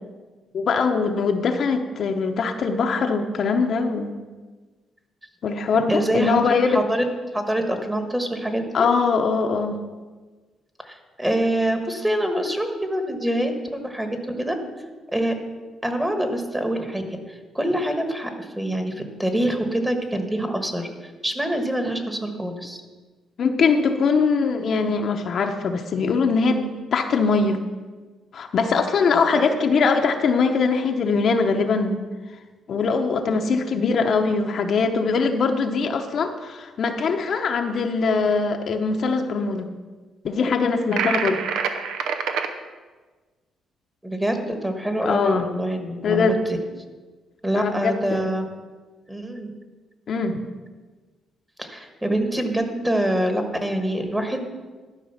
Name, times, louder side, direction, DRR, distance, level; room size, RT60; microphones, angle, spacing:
voice 1, 0.5-4.1 5.4-6.9 8.7-9.8 23.4-27.6 28.3-32.0 32.7-39.7 40.2-41.4 45.0-45.5 46.0-46.4 47.6-48.3 50.1-50.4, left 4 dB, 60° left, 4 dB, 0.8 m, -22 dB
voice 2, 5.9-7.0 7.3-8.9 10.8-14.5 15.1-15.3 15.8-17.0 17.3-22.8 29.3-29.4 44.0-46.4 47.4-48.4 49.1-49.5 51.6-54.5, right 1 dB, 10° right, 5 dB, 1.4 m, -25 dB
sound 1, 40.9-42.5, right 6 dB, 85° right, 0.7 m, -26 dB
12.5 x 5.0 x 5.8 m, 1.3 s
cardioid pair, 90°, 0 cm